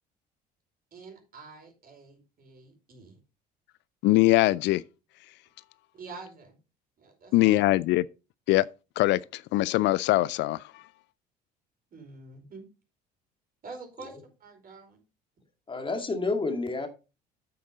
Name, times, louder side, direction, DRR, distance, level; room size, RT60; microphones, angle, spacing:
voice 1, 0.9-3.2 5.9-6.6 7.0-7.5 11.9-12.7 13.6-15.0, right 4 dB, 45° right, 5.0 m, -47 dB
voice 2, 4.0-4.8 7.3-8.1 8.5-8.7 9.0-10.8, left 17 dB, 60° left, 0.4 m, -22 dB
voice 3, 15.7-16.9, left 3 dB, 25° left, 1.9 m, -30 dB
8.7 x 8.5 x 3.9 m
hypercardioid pair, 65°, 21 cm